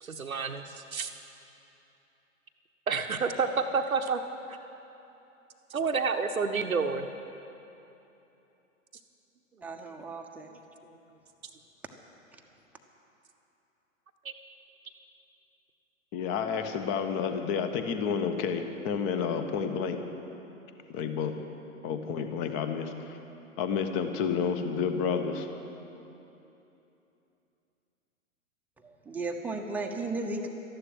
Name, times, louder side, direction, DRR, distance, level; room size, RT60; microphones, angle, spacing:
voice 1, 0.0-1.1 2.9-4.2 4.5-4.6 5.7-7.1 14.2-14.3, right 5 dB, 90° right, 6 dB, 0.8 m, -29 dB
voice 2, 9.6-10.5 28.8-30.5, right 3 dB, 5° right, 1 dB, 0.8 m, -35 dB
voice 3, 16.1-20.0 20.9-21.3 21.8-22.9 23.6-25.5, left 6 dB, 30° left, 7 dB, 1.1 m, -30 dB
13.0 x 11.5 x 7.8 m, 2.9 s
figure-of-eight pair, 110°, 40 cm